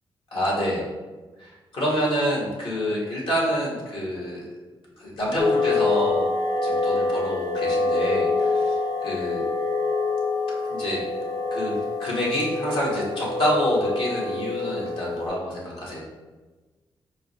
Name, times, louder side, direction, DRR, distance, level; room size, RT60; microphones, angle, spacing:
voice 1, 0.3-0.8 1.4-4.4 5.0-6.3 6.6-8.8 9.0-9.4 10.7-11.0 11.5-16.0, equal, 65° left, -5 dB, 1.4 m, -27 dB
sound 1, 5.4-15.3, left 3 dB, 40° left, 0.6 m, -26 dB
4.6 x 2.2 x 2.6 m, 1.3 s
supercardioid pair, 55°, 10 cm